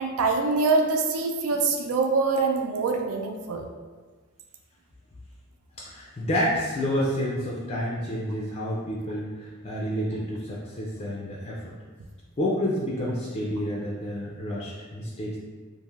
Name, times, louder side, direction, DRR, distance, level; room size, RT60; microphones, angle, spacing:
voice 1, 0.0-3.7, right 4 dB, 90° right, 4 dB, 0.4 m, -24 dB
voice 2, 5.8-11.7 12.4-15.4, equal, 30° left, -5 dB, 0.3 m, -29 dB
3.1 x 2.5 x 2.3 m, 1.4 s
head